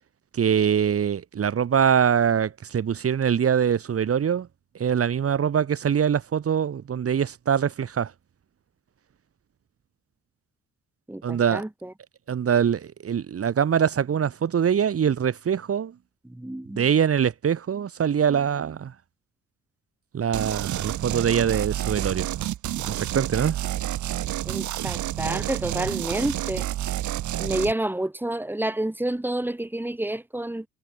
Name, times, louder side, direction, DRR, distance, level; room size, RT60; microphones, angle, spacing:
voice 1, 0.3-4.5 4.8-8.1 11.2-11.6 12.3-15.9 16.8-18.9 20.1-22.3 22.8-23.6, right 8 dB, 50° right, 2.4 m, -23 dB
voice 2, 11.1-11.9 16.2-16.9 24.4-26.7 27.4-30.6, right 1 dB, 5° right, 3.0 m, -29 dB
sound 1, 20.3-27.7, right 13 dB, 75° right, 1.6 m, -29 dB
cardioid pair, 90°, 30 cm